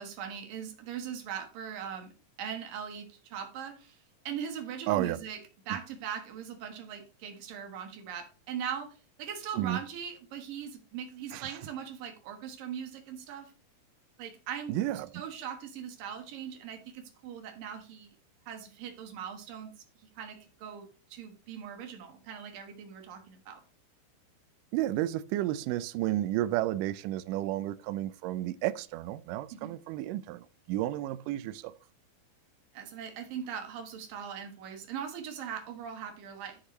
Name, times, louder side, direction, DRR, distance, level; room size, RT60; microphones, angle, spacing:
voice 1, 0.0-2.1 2.4-4.0 4.2-5.4 5.7-13.5 14.2-14.8 15.1-18.2 18.5-19.7 20.2-23.6 29.5-29.7 32.7-36.6, right 8 dB, 65° right, 3.0 m, -40 dB
voice 2, 4.9-5.2 9.5-9.8 11.3-11.6 14.7-15.1 24.7-31.7, right 14 dB, 90° right, 1.9 m, -32 dB
13.0 x 5.9 x 3.1 m
omnidirectional pair, 4.4 m